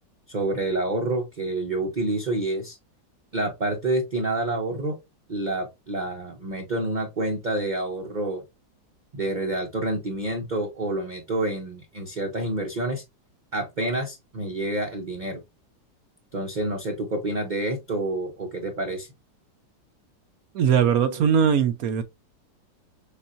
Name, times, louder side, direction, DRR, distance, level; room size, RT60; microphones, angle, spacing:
voice 1, 0.3-2.8 3.3-5.0 5.3-8.4 9.1-13.0 13.5-15.4 16.3-19.1 21.0-21.2, right 2 dB, 40° right, 0.6 m, -28 dB
voice 2, 20.5-22.0, right 7 dB, 65° right, 0.9 m, -20 dB
6.9 x 2.5 x 2.6 m
omnidirectional pair, 2.0 m